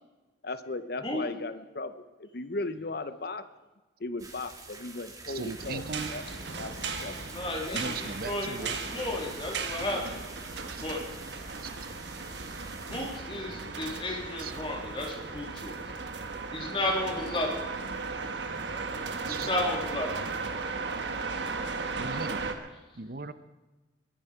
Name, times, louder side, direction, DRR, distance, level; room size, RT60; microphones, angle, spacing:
voice 1, 0.4-3.5 4.0-5.8 6.1-6.2 6.5-7.9, left 2 dB, 55° left, 12 dB, 0.7 m, -37 dB
sound 1, 4.2-13.2, right 3 dB, 20° right, 2.0 m, -47 dB
voice 2, 5.3-6.1 7.7-8.8 14.4-14.5 19.3-19.5 22.0-22.7 23.0-23.3, right 3 dB, 55° right, 13 dB, 0.8 m, -37 dB
sound 2, 5.6-22.5, right 4 dB, 70° right, 1.4 m, -36 dB
voice 3, 7.3-10.2 10.7-11.0 12.9-15.7 16.5-17.6 19.2-20.1, left 1 dB, 30° left, 0 dB, 3.2 m, -33 dB
21.5 x 10.5 x 5.0 m, 1.2 s
head